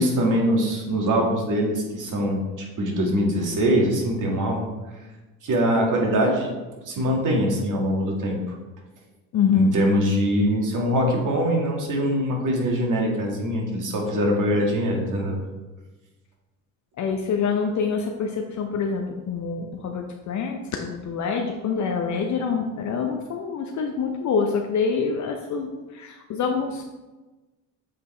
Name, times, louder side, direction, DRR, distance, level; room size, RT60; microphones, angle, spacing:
voice 1, 0.0-4.6 5.4-6.5 6.9-8.4 9.5-15.4, equal, 50° right, -1 dB, 1.9 m, -23 dB
voice 2, 9.3-9.7 17.0-26.8, left 5 dB, 45° left, 3 dB, 0.7 m, -26 dB
7.5 x 4.0 x 3.3 m, 1.2 s
hypercardioid pair, 65°, 40 cm